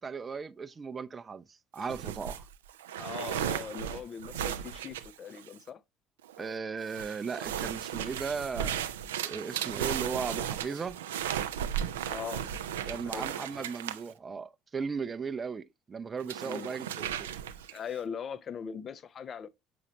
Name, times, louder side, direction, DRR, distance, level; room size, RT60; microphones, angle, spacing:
voice 1, 0.0-2.4 6.4-8.8 9.2-11.0 12.9-17.3, right 5 dB, 30° right, 0.5 m, -37 dB
sound 1, 1.8-5.7 6.2-6.6 6.9-14.1 16.2-17.9, right 10 dB, 80° right, 0.4 m, -35 dB
voice 2, 3.0-5.8 12.0-12.5 13.0-13.4 16.4-16.7 17.7-19.5, left 7 dB, 45° left, 0.6 m, -40 dB
7.0 x 4.9 x 2.8 m
hypercardioid pair, 60°, 0 cm